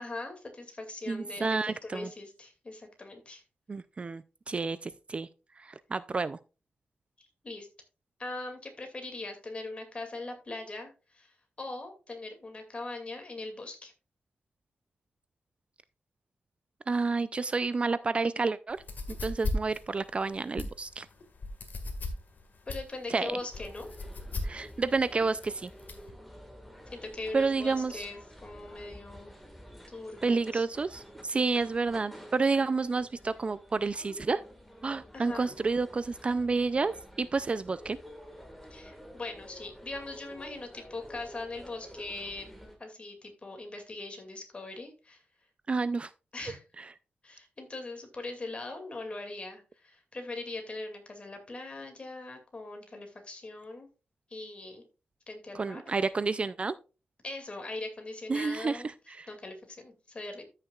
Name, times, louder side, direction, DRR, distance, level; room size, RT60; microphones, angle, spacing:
voice 1, 0.0-3.4 7.2-7.7 8.2-13.9 22.7-23.9 26.9-29.3 29.9-30.6 35.1-35.5 38.7-42.5 42.8-45.2 46.3-46.6 47.2-53.9 54.3-54.8 55.3-55.9 57.2-58.9 59.3-60.4, left 2 dB, 30° left, 2.3 m, -41 dB
voice 2, 1.1-2.1 3.7-5.3 5.6-6.4 16.9-18.8 19.2-21.1 23.1-23.4 24.4-25.7 27.3-28.0 30.2-34.4 34.8-38.0 45.7-46.1 55.5-56.7 58.3-59.3, right 4 dB, 30° right, 0.3 m, -30 dB
sound 1, 18.7-26.1, left 3 dB, 55° left, 1.7 m, -38 dB
sound 2, 23.5-42.8, equal, ahead, 1.7 m, -50 dB
13.5 x 6.5 x 2.3 m
wide cardioid pair, 130°, 4 cm